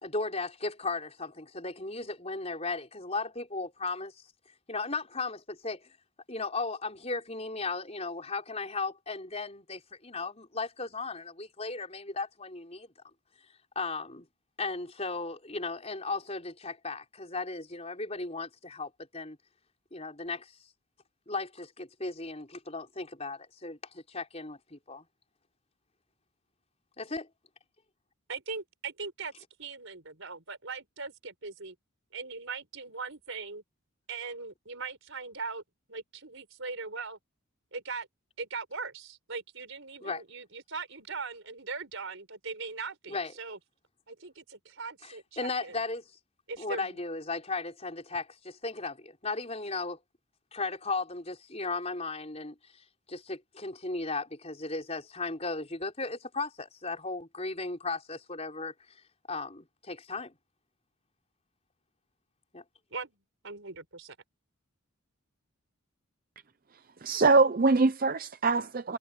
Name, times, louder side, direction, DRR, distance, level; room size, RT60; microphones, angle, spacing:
voice 1, 0.0-4.1 4.7-5.9 6.3-12.9 13.8-14.3 14.6-19.4 19.9-20.5 21.3-25.1 27.0-27.3 40.0-40.2 43.1-43.3 45.0-46.0 46.6-50.0 50.5-52.6 53.1-59.0 59.3-60.4 62.5-62.6, left 3 dB, 30° left, 5.0 m, -36 dB
voice 2, 28.3-29.3 29.6-31.8 32.1-33.6 34.1-35.6 35.9-37.2 37.7-38.1 38.4-43.6 44.1-45.8 46.5-47.0 62.9-63.2 63.4-63.7, right 4 dB, 60° right, 5.1 m, -40 dB
voice 3, 67.0-69.0, right 3 dB, 40° right, 0.6 m, -23 dB
head